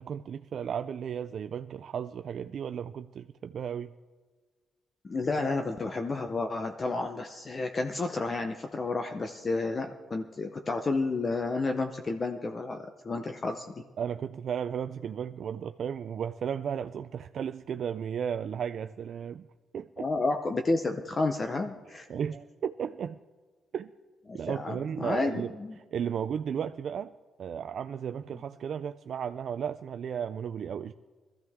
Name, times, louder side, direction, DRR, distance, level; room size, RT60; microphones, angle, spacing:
voice 1, 0.0-3.9 14.0-19.5 19.7-20.1 22.1-23.2 23.7-23.9 24.3-25.6 25.9-27.1 27.4-30.9, right 8 dB, 50° right, 9 dB, 0.4 m, -34 dB
voice 2, 5.0-13.8 20.0-22.1 24.3-25.8, left 3 dB, 25° left, 6 dB, 0.7 m, -31 dB
21.5 x 14.5 x 3.6 m, 1.4 s
cardioid pair, 155°, 0 cm